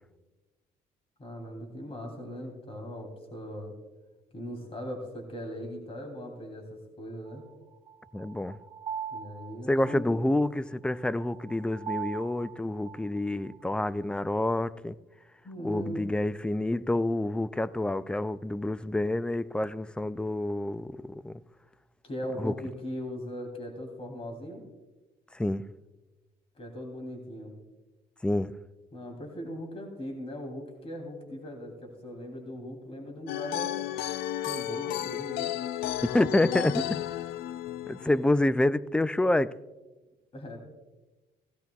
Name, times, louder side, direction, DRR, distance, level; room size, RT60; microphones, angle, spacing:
voice 1, 1.2-3.7 4.3-7.4 9.1-10.1 15.4-16.1 22.0-24.6 26.6-27.5 28.9-33.7 34.4-35.5 40.3-40.6, equal, 35° left, 2.9 m, -39 dB
sound 1, 7.3-14.1, right 7 dB, 35° right, 1.4 m, -42 dB
voice 2, 8.1-8.6 9.7-15.0 15.6-21.3 22.4-22.5 25.3-25.7 28.2-28.5 36.0-37.0 37.9-39.5, left 1 dB, 5° left, 0.3 m, -28 dB
sound 2, 33.3-38.3, left 13 dB, 65° left, 0.5 m, -33 dB
17.0 x 16.5 x 2.3 m
cardioid pair, 110°, 17 cm